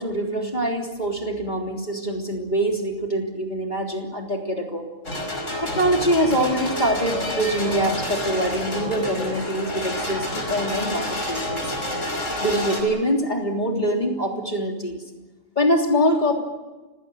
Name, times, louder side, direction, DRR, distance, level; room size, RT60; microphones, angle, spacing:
voice 1, 0.0-4.9 5.6-11.7 12.4-15.0 15.6-16.4, equal, 35° left, 1 dB, 3.5 m, -24 dB
sound 1, 5.1-12.8, left 1 dB, 75° left, 5.7 m, -28 dB
29.5 x 17.0 x 7.9 m, 1.2 s
omnidirectional pair, 1.3 m